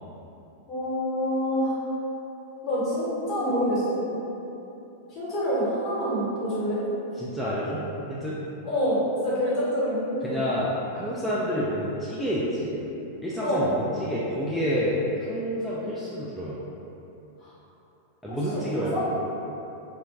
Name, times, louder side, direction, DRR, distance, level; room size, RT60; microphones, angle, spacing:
voice 1, 0.7-1.8 2.6-4.0 5.1-6.8 8.6-10.4 13.4-13.7 17.4-17.5 18.3-19.0, equal, 40° left, -8 dB, 1.1 m, -27 dB
voice 2, 7.2-7.8 8.1-8.4 10.2-12.8 13.2-15.0 15.3-16.6 18.2-19.1, equal, 5° left, -9 dB, 0.4 m, -29 dB
2.3 x 2.1 x 3.2 m, 3.0 s
hypercardioid pair, 105°, 0 cm